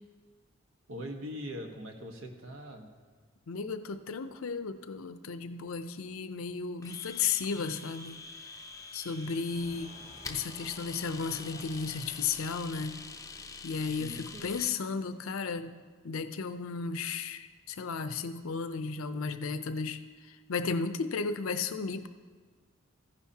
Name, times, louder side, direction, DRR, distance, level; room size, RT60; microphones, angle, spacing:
voice 1, 0.9-2.9 13.9-14.5, equal, 80° right, 4 dB, 1.2 m, -42 dB
voice 2, 3.5-8.2 8.9-9.9 10.3-13.0 13.6-15.8 16.0-22.1, left 5 dB, 75° left, 10 dB, 0.5 m, -34 dB
Domestic sounds home sounds, 6.8-14.8, left 4 dB, 15° left, 0.5 m, -46 dB
sound 1, 9.5-14.6, right 1 dB, 25° right, 0.8 m, -55 dB
14.5 x 10.5 x 2.8 m, 1.5 s
head